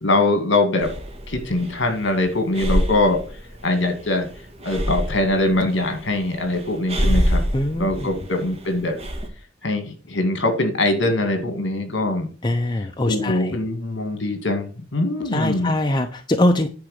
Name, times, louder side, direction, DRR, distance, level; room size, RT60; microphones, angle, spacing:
voice 1, 0.0-0.9 1.3-3.2 3.6-4.3 4.6-7.4 7.8-9.0 9.6-12.3 13.1-15.7, left 2 dB, 65° left, 7 dB, 2.1 m, -22 dB
Breathing, 0.8-9.3, equal, 30° right, 1.7 m, -27 dB
voice 2, 7.5-8.1 12.4-13.6 15.3-16.7, left 1 dB, 25° left, 5 dB, 0.6 m, -22 dB
9.5 x 3.9 x 6.6 m, 0.37 s
head